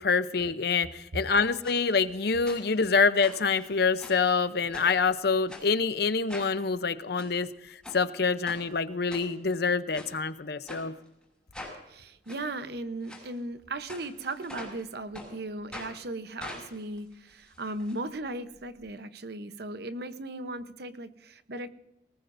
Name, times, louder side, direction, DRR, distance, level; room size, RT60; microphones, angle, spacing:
voice 1, 0.0-10.9, left 5 dB, 60° left, 13 dB, 0.7 m, -26 dB
sound 1, 1.6-1.8 2.5-2.9 3.2-4.3 4.7-5.1 5.5-5.7 6.3-6.6 7.0-7.3 7.8-8.0 8.5-8.6 9.1-9.6 9.9-10.1 10.7-10.8 11.5-11.8 12.3-12.4 13.0-13.2 13.9-14.8 15.1-15.3 15.7-15.9 16.4-17.9 18.2-18.3 18.6-18.7, left 1 dB, 5° left, 5.7 m, -43 dB
voice 2, 11.9-21.7, right 2 dB, 60° right, 11 dB, 0.9 m, -37 dB
20.0 x 19.0 x 2.6 m, 0.86 s
head